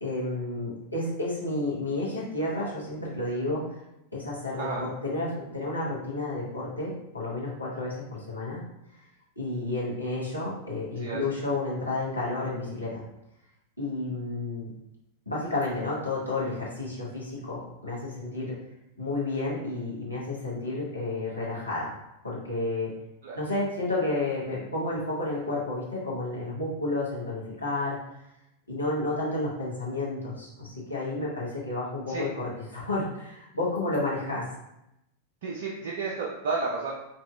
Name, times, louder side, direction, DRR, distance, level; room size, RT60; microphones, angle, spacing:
voice 1, 0.0-3.6 4.1-8.6 9.4-13.0 13.8-14.7 15.3-18.6 19.0-21.9 22.2-22.9 23.3-28.0 28.7-34.5, left 2 dB, 85° left, -6 dB, 0.9 m, -31 dB
voice 2, 11.0-11.4 23.2-23.4 32.1-32.3 35.4-36.9, right 4 dB, 55° right, -2 dB, 0.4 m, -32 dB
3.5 x 2.7 x 2.3 m, 0.86 s
figure-of-eight pair, 90°, 0 cm